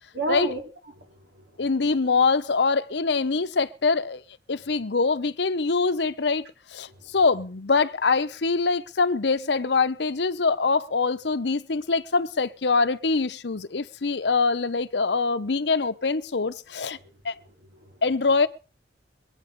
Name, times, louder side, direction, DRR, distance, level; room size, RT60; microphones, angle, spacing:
voice 1, 0.1-0.6 0.9-1.7 6.9-7.1 17.0-17.1 17.6-18.0, right 1 dB, 80° right, 3.9 m, -33 dB
voice 2, 1.6-4.2 4.5-6.4 6.7-17.0 17.2-17.4 18.0-18.5, left 4 dB, 65° left, 0.8 m, -24 dB
23.0 x 8.9 x 5.2 m
head